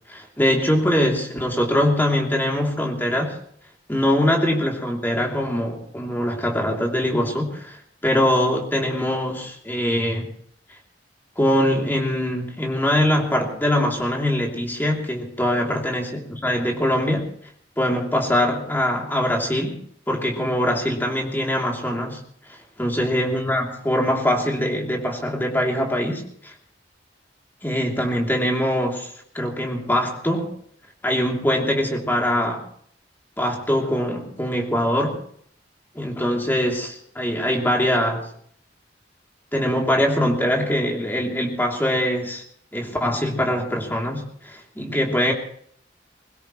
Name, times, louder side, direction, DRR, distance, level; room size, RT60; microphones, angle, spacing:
voice 1, 0.1-3.4 3.9-7.8 8.0-10.3 11.4-17.3 17.8-19.8 20.1-22.2 22.5-26.5 27.6-30.5 31.0-32.6 33.4-35.2 35.9-38.3 39.5-42.4 42.7-45.3, equal, 10° left, 0 dB, 3.0 m, -23 dB
22.0 x 20.0 x 3.2 m, 0.62 s
head